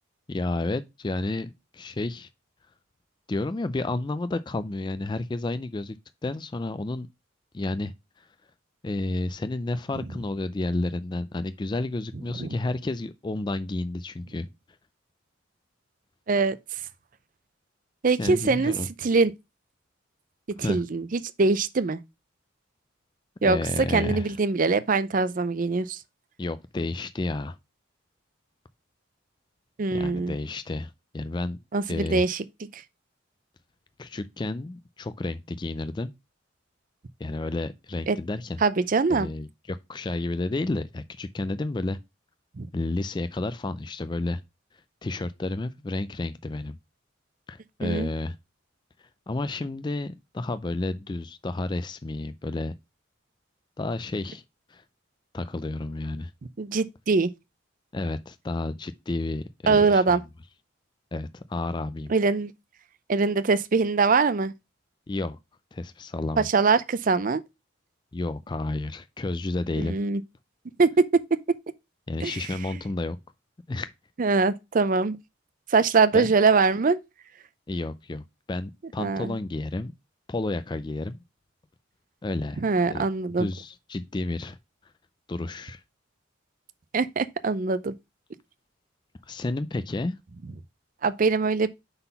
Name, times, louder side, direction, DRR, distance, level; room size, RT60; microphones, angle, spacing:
voice 1, 0.3-2.3 3.3-6.0 6.2-7.1 7.5-8.3 8.8-14.5 18.2-18.9 20.6-20.8 23.4-24.3 26.4-27.6 29.9-31.6 31.9-32.2 34.0-36.1 37.2-38.6 39.1-42.0 42.7-44.4 45.0-46.7 47.5-48.4 49.3-52.7 53.8-54.4 54.7-54.8 55.3-56.3 57.9-60.2 61.1-62.1 65.1-65.4 65.7-66.5 68.1-70.0 72.1-73.2 73.7-73.9 76.1-76.3 77.7-78.2 78.5-79.9 80.3-81.2 82.2-82.6 82.9-83.0 83.4-84.6 85.3-85.8 89.3-90.1, left 2 dB, 20° left, 0.3 m, -31 dB
voice 2, 18.0-18.7 19.0-19.3 20.5-22.0 23.4-26.0 29.8-30.3 31.7-32.4 32.7-32.8 38.1-38.2 38.6-39.3 42.6-42.7 47.8-48.1 56.6-57.3 59.7-60.2 62.1-62.5 63.1-64.5 66.4-67.4 69.8-70.2 70.8-70.9 72.2-72.4 74.2-75.2 75.7-77.0 79.0-79.3 82.6-83.5 86.9-87.9 91.0-91.7, right 4 dB, 40° right, 0.5 m, -23 dB
5.7 x 4.0 x 5.4 m
head